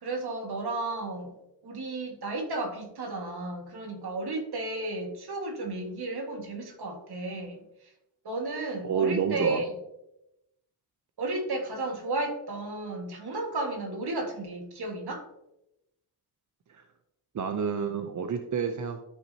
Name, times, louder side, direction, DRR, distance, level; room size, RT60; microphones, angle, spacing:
voice 1, 0.0-1.4 1.6-7.6 8.3-9.7 11.2-15.3, right 2 dB, 70° right, 3 dB, 1.9 m, -33 dB
voice 2, 8.8-9.6 16.7-16.8 17.3-19.0, right 6 dB, 45° right, 7 dB, 0.7 m, -29 dB
13.0 x 6.1 x 2.9 m, 0.87 s
wide cardioid pair, 115°, 40 cm